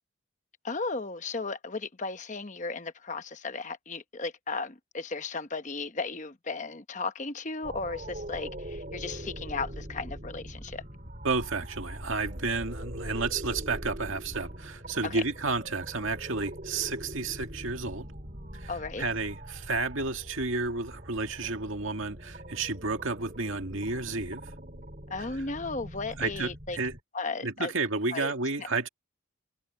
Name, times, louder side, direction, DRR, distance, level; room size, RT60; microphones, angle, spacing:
voice 1, 0.6-10.8 15.0-15.2 18.7-19.1 25.1-26.8 27.1-27.7 28.1-28.3 28.6-28.7, left 3 dB, 35° left, 1.0 m, -35 dB
sound 1, 7.6-27.0, right 1 dB, 40° right, 4.7 m, -42 dB
voice 2, 11.2-18.1 18.5-18.7 19.0-24.4 26.2-27.0 27.4-28.9, right 3 dB, 75° right, 2.1 m, -31 dB
head